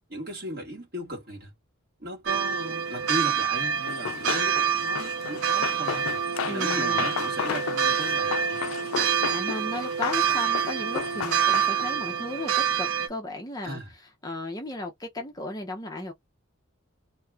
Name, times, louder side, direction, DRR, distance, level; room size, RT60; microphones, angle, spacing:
voice 1, 0.1-1.5 2.0-8.6 13.6-13.9, right 1 dB, 45° right, 1.6 m, -37 dB
sound 1, 2.3-13.1, right 7 dB, 75° right, 0.5 m, -27 dB
Run, 3.9-12.0, left 7 dB, 70° left, 0.4 m, -34 dB
voice 2, 6.5-7.1 9.0-13.8 14.2-16.1, left 2 dB, 15° left, 0.6 m, -35 dB
2.7 x 2.3 x 3.3 m
head